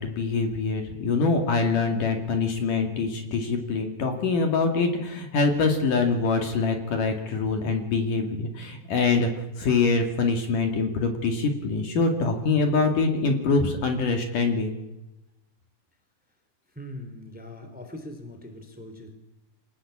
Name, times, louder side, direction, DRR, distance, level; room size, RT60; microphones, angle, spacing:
voice 1, 0.0-9.3 9.6-14.7, left 4 dB, 55° left, 4 dB, 3.5 m, -24 dB
voice 2, 16.7-19.1, left 1 dB, ahead, 7 dB, 3.0 m, -41 dB
26.0 x 19.0 x 8.7 m, 0.97 s
omnidirectional pair, 4.7 m